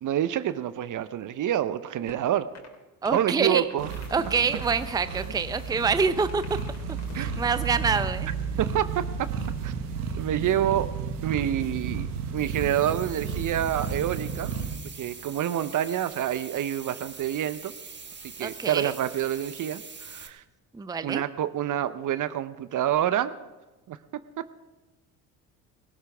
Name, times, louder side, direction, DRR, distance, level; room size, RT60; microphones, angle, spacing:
voice 1, 0.0-2.5 3.1-3.9 5.3-5.4 7.1-7.4 8.6-9.3 9.6-9.7 10.2-10.9 11.2-12.1 12.3-14.5 15.0-17.7 18.4-20.4 21.0-23.3 23.9-24.6, right 11 dB, 45° right, 14 dB, 0.8 m, -27 dB
sound 1, 2.1-2.3 2.6-2.7 3.0-4.3 4.6-5.3 5.6-8.0, left 4 dB, 40° left, 3.8 m, -47 dB
voice 2, 3.0-3.6 4.1-6.4 7.1-8.3 18.4-18.9 20.7-21.2, right 5 dB, 10° right, 12 dB, 0.6 m, -26 dB
sound 2, 3.8-14.7, right 6 dB, 85° right, 1.5 m, -33 dB
sound 3, 12.3-20.3, right 5 dB, 25° right, 1.4 m, -44 dB
17.5 x 16.0 x 3.5 m, 1.1 s
hypercardioid pair, 65°, 44 cm